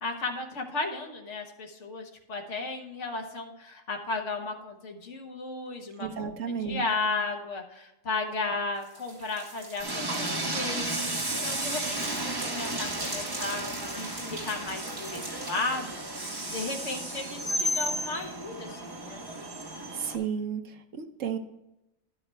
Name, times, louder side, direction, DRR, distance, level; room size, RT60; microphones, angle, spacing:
voice 1, 0.0-13.6 13.9-16.0 16.5-19.2, left 3 dB, 65° left, 2 dB, 1.7 m, -34 dB
voice 2, 6.0-6.8 19.9-21.4, right 7 dB, 75° right, 7 dB, 1.3 m, -33 dB
sound 1, 8.8-15.5, right 1 dB, 45° right, 2.4 m, -41 dB
Train, 9.8-20.2, right 1 dB, 20° right, 1.0 m, -33 dB
11.5 x 8.6 x 3.4 m, 0.89 s
omnidirectional pair, 1.4 m